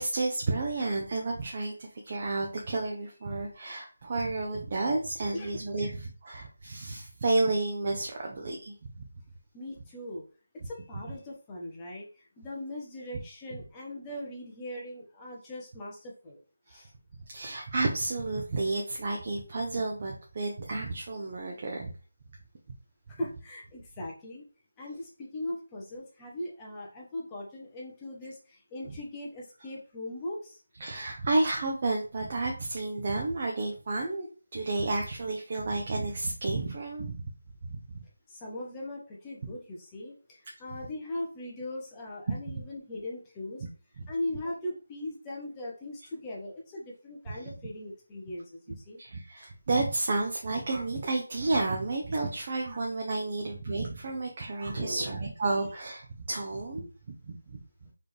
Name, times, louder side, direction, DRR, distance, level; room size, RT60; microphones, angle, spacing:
voice 1, 0.0-8.9 16.7-16.8 17.3-21.9 30.8-34.3 34.5-37.2 37.6-37.8 44.0-44.1 47.3-47.5 48.7-56.9 57.3-57.6, right 2 dB, 30° right, 0 dB, 0.6 m, -31 dB
voice 2, 5.3-5.9 9.5-10.2 10.6-16.4 16.7-16.9 23.1-24.5 24.8-30.6 38.3-43.6 44.1-49.0 54.7-55.2, left 1 dB, 10° left, -3 dB, 0.7 m, -39 dB
4.2 x 3.1 x 3.2 m, 0.37 s
figure-of-eight pair, 175°, 0 cm